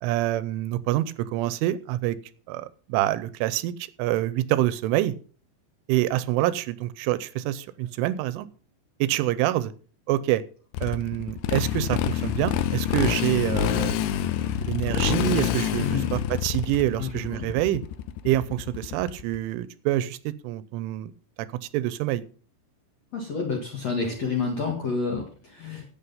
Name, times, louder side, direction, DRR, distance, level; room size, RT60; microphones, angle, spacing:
voice 1, 0.0-2.2 2.5-3.7 4.0-5.1 5.9-8.5 9.0-9.7 10.1-10.4 10.8-17.8 18.2-21.1 21.6-22.2, right 14 dB, 85° right, 16 dB, 3.1 m, -26 dB
Motorcycle, 10.7-19.4, left 11 dB, 80° left, 2.6 m, -27 dB
voice 2, 17.0-17.5 23.1-25.8, left 4 dB, 55° left, 0 dB, 1.9 m, -29 dB
11.5 x 8.4 x 5.6 m, 0.41 s
omnidirectional pair, 5.6 m